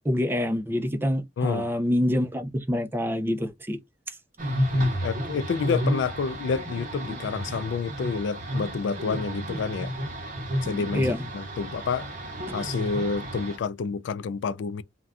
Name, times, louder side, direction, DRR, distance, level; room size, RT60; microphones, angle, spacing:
voice 1, 0.0-3.8 10.9-11.2, left 1 dB, 10° right, 0.5 m, -26 dB
voice 2, 1.4-1.7 4.7-9.9 10.6-12.1 12.5-14.8, left 5 dB, 80° left, 0.3 m, -29 dB
sound 1, 4.4-13.6, equal, 45° right, 0.9 m, -31 dB
2.5 x 2.2 x 3.4 m
head